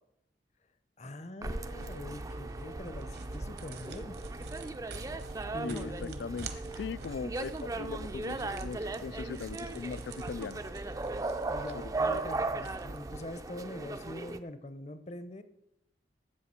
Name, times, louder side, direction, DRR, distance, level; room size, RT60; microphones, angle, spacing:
voice 1, 1.0-4.2 5.5-6.5 11.5-15.4, left 1 dB, 40° left, 11 dB, 0.7 m, -44 dB
sound 1, 1.4-14.4, right 3 dB, 20° right, 0.4 m, -38 dB
sound 2, 1.8-13.2, right 2 dB, 65° right, 1.0 m, -45 dB
voice 2, 5.6-6.5 6.8-10.6 11.7-12.2, left 5 dB, 75° left, 19 dB, 0.3 m, -40 dB
13.0 x 8.4 x 4.3 m, 0.83 s
head